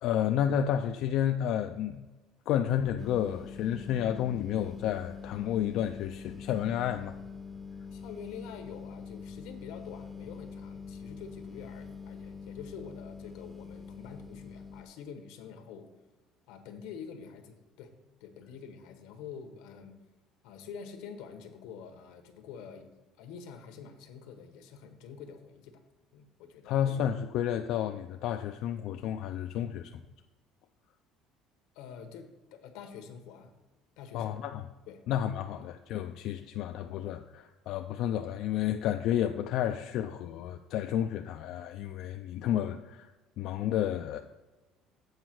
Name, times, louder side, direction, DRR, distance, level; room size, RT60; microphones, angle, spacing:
voice 1, 0.0-2.1 2.5-7.1 26.7-30.0 34.1-34.7 35.1-43.1 43.4-44.2, left 10 dB, 60° left, 6 dB, 0.4 m, -31 dB
sound 1, 3.0-14.8, left 5 dB, 5° left, 0.6 m, -44 dB
voice 2, 7.9-15.9 16.5-17.9 18.2-20.0 20.4-22.9 23.2-25.8 26.1-26.7 31.7-33.5 34.0-34.4 34.9-35.0 36.4-36.7, left 6 dB, 85° left, 6 dB, 1.2 m, -47 dB
8.1 x 4.4 x 6.1 m, 1.1 s
cardioid pair, 155°, 0 cm